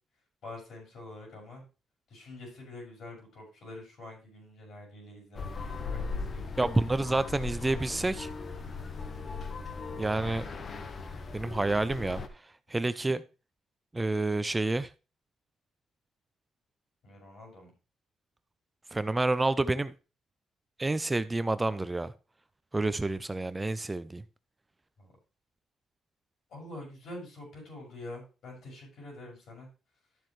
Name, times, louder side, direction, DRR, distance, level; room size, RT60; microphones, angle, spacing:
voice 1, 0.4-1.6 2.1-5.5 5.9-6.7 8.6-8.9 17.0-17.7 25.0-25.1 26.5-29.7, left 2 dB, 65° left, 6.3 m, -46 dB
sound 1, 5.3-12.3, left 4 dB, 45° left, 1.1 m, -38 dB
voice 2, 6.6-8.3 10.0-10.5 11.3-12.2 12.7-13.2 13.9-14.9 18.9-19.9 20.8-22.1 22.7-24.2, right 2 dB, 15° right, 0.5 m, -28 dB
12.0 x 7.5 x 3.2 m
cardioid pair, 90°, 0 cm